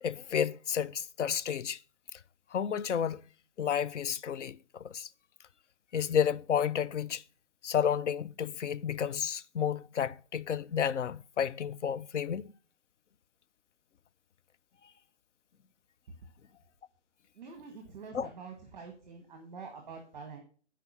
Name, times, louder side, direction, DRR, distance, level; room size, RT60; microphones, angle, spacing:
voice 1, 0.0-1.8 2.1-2.2 2.5-3.3 3.6-5.1 5.9-7.2 7.6-12.5 18.1-18.3, left 8 dB, 85° left, 0.6 m, -31 dB
voice 2, 17.3-20.4, right 5 dB, 5° right, 0.9 m, -46 dB
11.0 x 4.8 x 6.0 m
hypercardioid pair, 175°, 35 cm